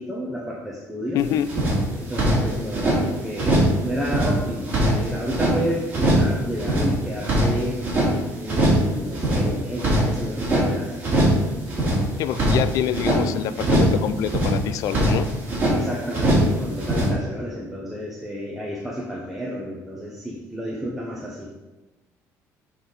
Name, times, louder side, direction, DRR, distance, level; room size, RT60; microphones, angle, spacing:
voice 1, 0.0-1.3 2.0-7.8 8.3-11.0 15.7-21.5, equal, 5° right, -3 dB, 0.8 m, -31 dB
voice 2, 1.1-1.5 12.2-15.3, left 10 dB, 65° left, 14 dB, 0.4 m, -25 dB
sound 1, 1.2-1.3 1.5-3.0 3.3-3.8 4.0-5.5 5.9-6.3 6.6-8.1 8.5-8.9 9.1-10.7 11.0-11.4 11.7-13.2 13.6-14.0 14.2-15.8 16.1-16.5 16.8-17.1, right 1 dB, 25° right, 2.6 m, -21 dB
7.6 x 4.0 x 5.4 m, 1.1 s
cardioid pair, 165°, 6 cm